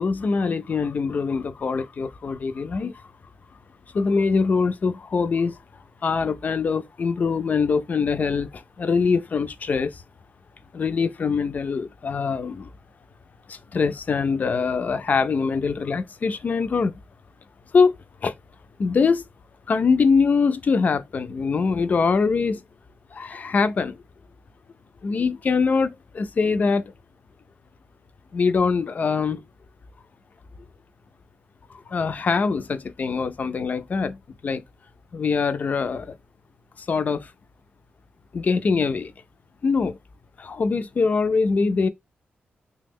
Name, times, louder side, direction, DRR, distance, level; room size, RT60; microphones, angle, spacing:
voice 1, 0.0-3.0 3.9-5.6 6.0-10.0 10.7-12.7 13.5-16.9 17.7-18.0 18.2-18.4 18.8-19.2 19.7-22.6 23.1-24.0 25.0-26.9 28.3-29.4 31.7-34.6 35.1-36.2 36.8-37.3 38.3-39.1 39.6-40.0 40.4-41.9, left 5 dB, 45° left, 0.3 m, -23 dB
3.3 x 2.1 x 3.5 m
wide cardioid pair, 110°, 4 cm